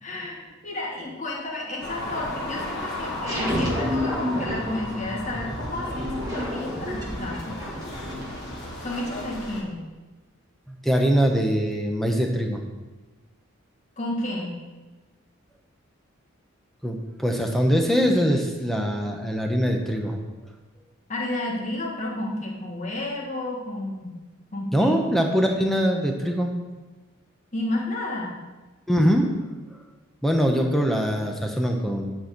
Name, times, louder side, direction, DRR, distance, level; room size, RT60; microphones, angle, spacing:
voice 1, 0.0-7.6 8.8-9.8 14.0-14.6 21.1-24.2 24.5-25.0 27.5-28.4, left 1 dB, 35° left, -3 dB, 1.7 m, -31 dB
sound 1, 1.8-9.6, left 1 dB, 55° left, 2.2 m, -35 dB
sound 2, 3.3-8.7, equal, 15° right, 1.8 m, -30 dB
voice 2, 10.7-12.6 16.8-20.2 24.7-26.5 28.9-29.3 30.2-32.1, equal, ahead, 2 dB, 0.9 m, -22 dB
9.9 x 4.5 x 6.6 m, 1.2 s
head